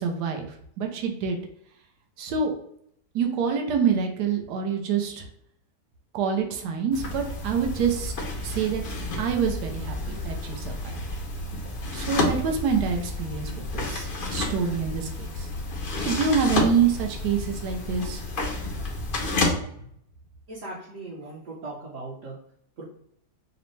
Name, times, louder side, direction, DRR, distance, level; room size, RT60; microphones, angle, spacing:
voice 1, 0.0-1.4 2.2-2.5 3.1-5.2 6.1-8.1 8.4-8.8 9.2-11.0 11.9-15.5 16.0-18.2, right 6 dB, 75° right, 3 dB, 1.2 m, -26 dB
sound 1, 6.9-19.5, left 2 dB, 55° left, 0.6 m, -30 dB
voice 2, 20.5-22.4 22.8-22.9, right 2 dB, 55° right, -7 dB, 1.1 m, -38 dB
5.1 x 2.1 x 3.1 m, 0.69 s
omnidirectional pair, 1.8 m